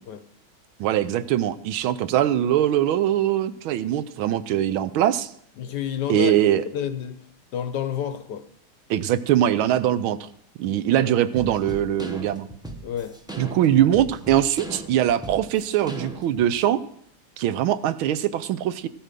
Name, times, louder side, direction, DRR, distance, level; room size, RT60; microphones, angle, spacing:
voice 1, 0.8-5.3 6.1-6.6 8.9-10.3 10.6-12.5 13.4-16.8 17.4-18.9, right 11 dB, 80° right, 15 dB, 1.4 m, -22 dB
voice 2, 5.6-6.3 6.7-7.2 7.5-8.5 11.0-11.1 12.8-13.2, left 9 dB, 65° left, 11 dB, 1.2 m, -29 dB
sound 1, 11.3-16.5, right 2 dB, 5° right, 0.4 m, -37 dB
14.0 x 8.6 x 6.7 m, 0.66 s
omnidirectional pair, 2.3 m